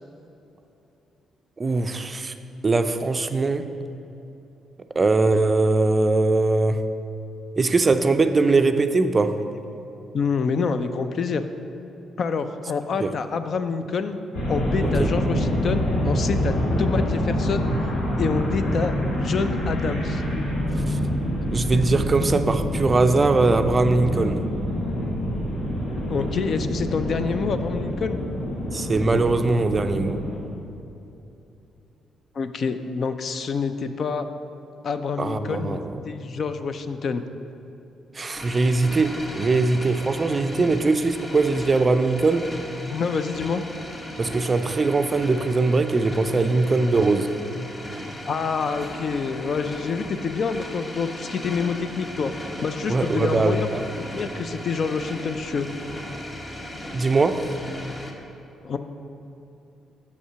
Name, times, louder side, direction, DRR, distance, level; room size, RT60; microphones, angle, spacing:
voice 1, 1.6-2.3 2.6-3.7 5.0-6.8 7.6-9.4 13.0-13.1 15.0-15.1 20.9-21.0 21.5-24.4 28.7-30.2 35.2-35.9 38.2-42.5 44.2-47.3 52.9-53.8 56.9-57.4, right 3 dB, 30° right, 9 dB, 0.4 m, -21 dB
voice 2, 10.1-11.4 12.2-14.2 14.5-17.7 18.2-20.2 26.1-28.2 32.3-34.3 34.8-35.8 36.1-37.2 40.6-40.8 42.9-43.6 48.3-52.3 52.6-53.7 54.0-55.7 58.6-58.8, left 5 dB, 50° left, 9 dB, 0.4 m, -27 dB
sound 1, 14.3-30.4, equal, 85° left, 1.5 m, -26 dB
sound 2, 38.3-58.1, left 1 dB, 25° left, 0.9 m, -37 dB
6.7 x 5.6 x 5.6 m, 3.0 s
cardioid pair, 90°, 0 cm